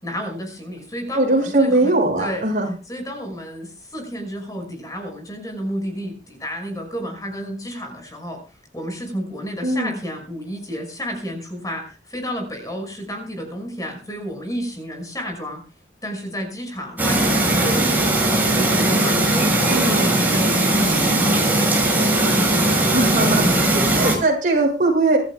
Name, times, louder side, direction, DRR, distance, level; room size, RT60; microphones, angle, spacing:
voice 1, 0.0-1.9 2.2-2.4 2.9-8.4 8.7-15.6 16.0-18.2 18.5-22.1, equal, 20° left, 3 dB, 5.9 m, -31 dB
voice 2, 1.1-2.7 9.6-9.9 19.7-20.1 22.9-25.2, right 2 dB, 45° right, 2 dB, 6.7 m, -20 dB
Chirp tweet, 17.0-24.2, right 1 dB, 10° right, 6.7 m, -19 dB
26.0 x 13.5 x 2.4 m, 0.34 s
head